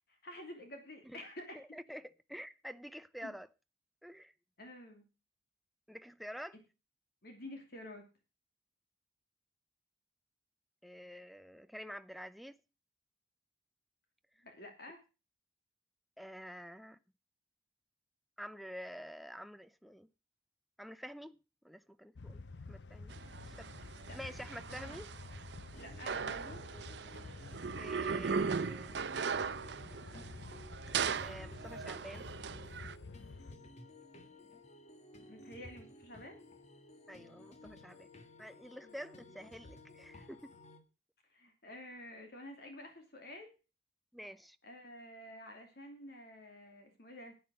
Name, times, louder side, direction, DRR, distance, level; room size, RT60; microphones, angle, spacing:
voice 1, 0.0-1.6 3.2-3.3 4.6-5.1 7.2-8.1 14.4-15.0 24.1-24.2 24.7-25.0 25.8-26.6 35.2-36.4 38.8-38.9 41.3-43.5 44.6-47.3, left 1 dB, 60° left, 2.9 m, -50 dB
voice 2, 1.6-3.5 4.0-4.3 5.9-6.6 10.8-12.6 16.2-17.0 18.4-20.1 20.8-21.4 21.6-23.1 23.5-23.7 24.1-25.1 27.8-28.9 31.2-32.2 37.1-38.1 38.4-40.5 44.1-44.6, equal, ahead, 0.6 m, -48 dB
sound 1, 22.1-33.5, left 3 dB, 80° left, 0.7 m, -50 dB
sound 2, 23.1-32.9, right 5 dB, 75° right, 0.6 m, -39 dB
sound 3, 25.7-40.8, left 1 dB, 40° left, 1.7 m, -56 dB
11.0 x 9.6 x 6.4 m
head